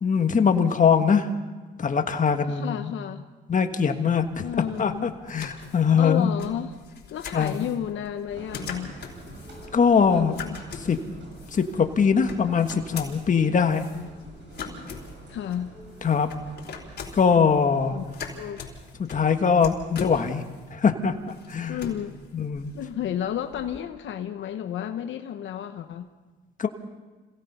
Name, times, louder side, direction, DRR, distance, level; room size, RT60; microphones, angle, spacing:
voice 1, 0.0-1.3 1.8-2.8 3.5-4.4 4.8-6.3 7.3-7.7 9.7-10.3 10.8-11.0 11.5-13.9 16.0-16.3 17.1-18.0 19.0-20.4 20.7-21.1 21.5-21.8 22.3-22.7 26.6-26.7, left 6 dB, 40° left, 6 dB, 1.6 m, -22 dB
voice 2, 2.4-3.2 4.4-5.1 6.0-6.7 7.1-9.0 10.1-10.6 15.3-15.7 17.9-18.0 18.3-18.7 21.7-22.2 22.7-26.1, left 10 dB, 75° left, 7 dB, 0.9 m, -32 dB
sound 1, 4.2-23.8, left 5 dB, 55° left, 4.4 m, -43 dB
sound 2, 8.3-18.4, right 2 dB, 65° right, 6.9 m, -47 dB
27.0 x 17.0 x 5.6 m, 1.3 s
cardioid pair, 90°, 20 cm